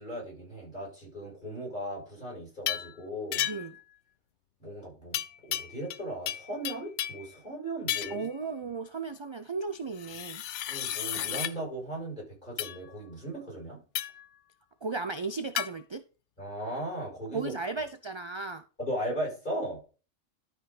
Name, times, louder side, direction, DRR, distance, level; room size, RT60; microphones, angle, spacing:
voice 1, 0.0-3.5 4.6-5.2 5.5-8.3 10.7-13.8 16.4-17.5 18.8-19.8, right 1 dB, 40° left, 6.2 m, -37 dB
sound 1, 2.7-2.9 3.3-3.8 5.1-6.0 6.3-7.3 7.9-8.3 10.0-11.5 12.6-12.8 13.9-14.3 15.6-15.7, left 11 dB, 75° left, 0.9 m, -33 dB
voice 2, 8.1-10.4 14.8-16.0 17.3-18.6, right 4 dB, 35° right, 0.5 m, -35 dB
12.5 x 5.4 x 4.1 m
omnidirectional pair, 1.3 m